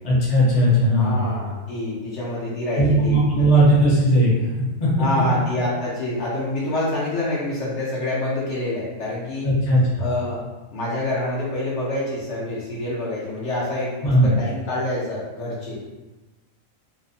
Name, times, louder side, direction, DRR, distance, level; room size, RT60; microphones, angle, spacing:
voice 1, 0.0-1.3 2.8-4.3 4.8-4.9 9.4-10.0 14.0-14.3, right 1 dB, 35° left, -7 dB, 0.7 m, -17 dB
voice 2, 1.0-3.5 5.0-9.5 10.0-10.4 10.7-15.8, left 1 dB, 65° left, -6 dB, 0.9 m, -27 dB
2.6 x 2.1 x 2.6 m, 1.1 s
omnidirectional pair, 1.4 m